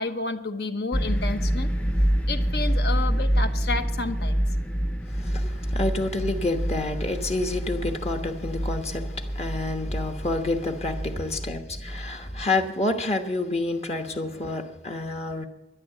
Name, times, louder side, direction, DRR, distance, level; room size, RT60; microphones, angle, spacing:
voice 1, 0.0-1.7 2.3-4.4, left 3 dB, 65° left, 1.1 m, -30 dB
sound 1, 0.9-12.5, equal, 5° left, 0.7 m, -27 dB
voice 2, 5.1-15.4, left 2 dB, 35° left, 1.1 m, -29 dB
12.0 x 10.5 x 7.7 m
head